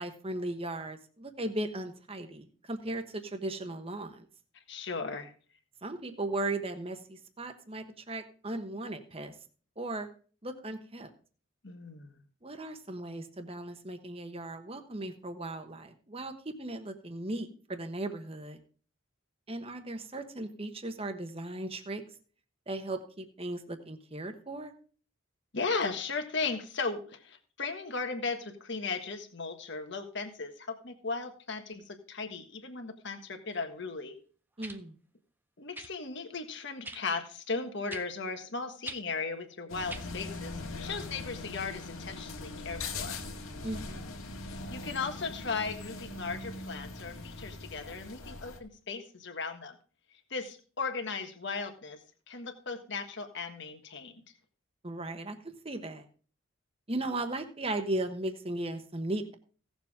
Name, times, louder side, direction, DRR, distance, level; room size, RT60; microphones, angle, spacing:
voice 1, 0.0-4.3 5.8-9.3 9.8-10.1 10.4-11.1 12.4-18.6 19.5-22.0 22.7-24.7 34.6-34.9 43.6-44.1 54.8-56.1 56.9-59.3, right 2 dB, 25° right, 7 dB, 1.1 m, -37 dB
voice 2, 4.7-5.3 11.6-12.2 25.5-34.1 35.6-40.5 40.8-43.2 44.4-49.7 50.3-52.0 52.3-54.2, left 4 dB, 55° left, 5 dB, 1.5 m, -36 dB
sound 1, 33.5-33.6 34.6-34.8 35.7-35.9 36.8-37.0 37.9-38.1 38.8-39.0 39.9-40.1 41.0-41.1, right 2 dB, 10° right, 0.6 m, -42 dB
sound 2, 39.7-48.6, left 3 dB, 80° left, 1.8 m, -41 dB
17.0 x 7.1 x 3.6 m, 0.39 s
head